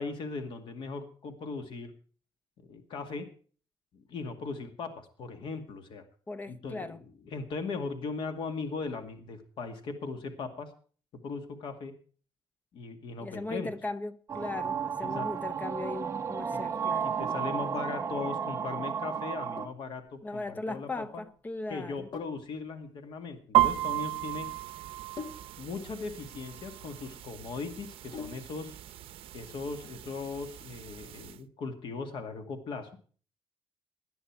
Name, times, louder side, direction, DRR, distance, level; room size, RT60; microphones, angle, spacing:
voice 1, 0.0-1.9 2.6-3.3 3.9-6.0 6.5-10.7 11.2-11.9 12.7-13.7 15.0-15.5 17.0-21.0 21.7-24.5 25.6-28.8 29.3-32.9, left 4 dB, 60° left, 2.2 m, -38 dB
voice 2, 6.3-7.0 13.2-17.1 20.2-22.1, left 2 dB, 20° left, 0.6 m, -38 dB
sound 1, 14.3-19.7, right 7 dB, 30° right, 0.7 m, -33 dB
Sink (filling or washing), 19.3-28.7, left 5 dB, 45° left, 1.7 m, -48 dB
sound 2, 23.5-31.4, right 15 dB, 75° right, 0.7 m, -33 dB
18.0 x 11.0 x 4.7 m
cardioid pair, 160°, 10 cm